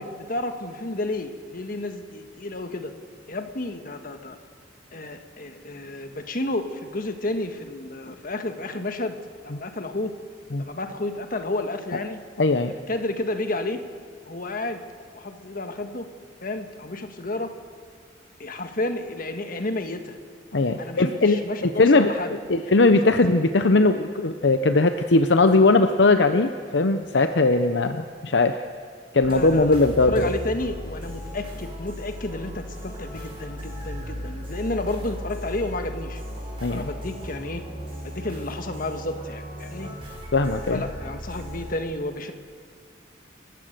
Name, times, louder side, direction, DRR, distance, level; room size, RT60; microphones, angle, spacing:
voice 1, 0.0-2.9 3.3-4.4 4.9-9.2 9.4-10.1 10.6-12.2 12.9-13.8 14.2-14.8 15.1-16.1 16.4-17.5 18.4-20.2 20.8-22.3 22.7-23.1 29.2-36.2 36.7-37.6 38.0-39.9 40.7-42.3, left 2 dB, 50° left, 6 dB, 1.6 m, -31 dB
voice 2, 12.4-12.7 20.5-28.6 29.1-30.3 36.6-36.9 39.8-39.9 40.3-40.8, left 3 dB, 70° left, 8 dB, 0.8 m, -20 dB
sound 1, 29.2-41.7, equal, 30° right, 6.0 m, -36 dB
28.5 x 15.5 x 6.7 m, 2.1 s
head